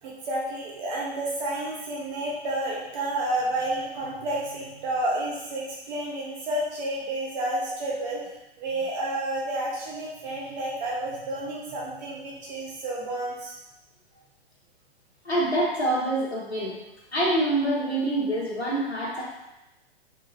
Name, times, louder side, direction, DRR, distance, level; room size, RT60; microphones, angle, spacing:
voice 1, 0.0-8.2 8.6-13.5, right 1 dB, 40° right, -4 dB, 1.0 m, -30 dB
voice 2, 15.2-16.8 17.1-19.2, right 1 dB, 85° left, -7 dB, 1.2 m, -25 dB
4.9 x 3.9 x 2.6 m, 0.95 s
figure-of-eight pair, 110°, 32 cm